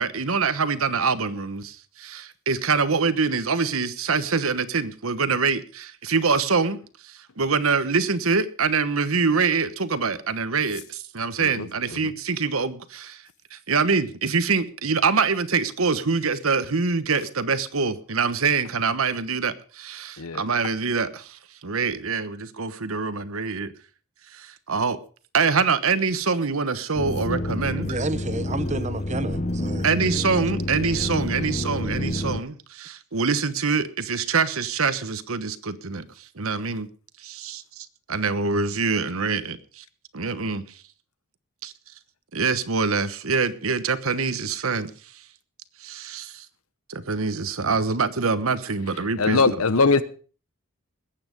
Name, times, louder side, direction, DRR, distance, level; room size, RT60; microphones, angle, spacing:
voice 1, 0.0-23.7 24.3-25.0 25.3-27.9 29.8-36.9 37.2-39.8 40.1-40.8 41.6-41.7 42.3-45.2 45.8-46.5 46.9-49.6, right 5 dB, 75° right, 1.2 m, -25 dB
sound 1, 27.0-32.4, left 1 dB, 30° left, 0.7 m, -28 dB
voice 2, 27.9-29.9, right 3 dB, 30° right, 0.9 m, -30 dB
voice 3, 49.2-50.0, left 4 dB, 85° left, 1.1 m, -21 dB
20.5 x 8.8 x 5.3 m
head